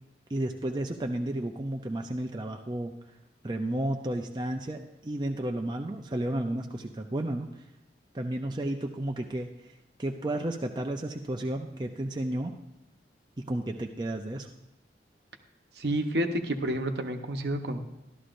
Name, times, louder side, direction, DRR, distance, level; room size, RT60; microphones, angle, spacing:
voice 1, 0.3-2.9 3.4-7.5 8.1-9.7 10.0-12.5 13.4-14.5, right 1 dB, 25° right, 2 dB, 0.5 m, -32 dB
voice 2, 15.8-17.8, right 1 dB, 65° right, 5 dB, 0.9 m, -29 dB
13.0 x 12.5 x 2.5 m, 0.92 s
head